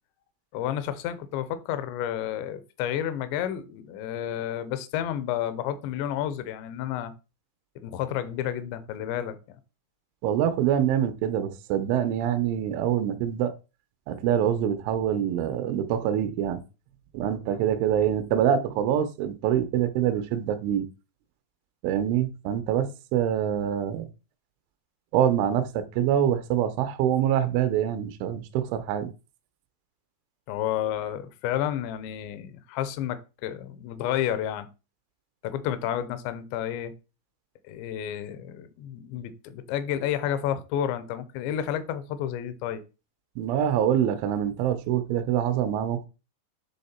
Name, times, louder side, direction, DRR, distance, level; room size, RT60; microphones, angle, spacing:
voice 1, 0.5-7.1 7.8-9.4 30.5-34.7 35.4-36.9 37.6-42.8, left 10 dB, 85° left, 2.9 m, -31 dB
voice 2, 10.2-13.5 14.1-16.6 17.1-20.9 21.8-24.1 25.1-29.1 43.4-46.1, right 10 dB, 85° right, 3.1 m, -25 dB
10.5 x 3.6 x 4.3 m
omnidirectional pair, 5.3 m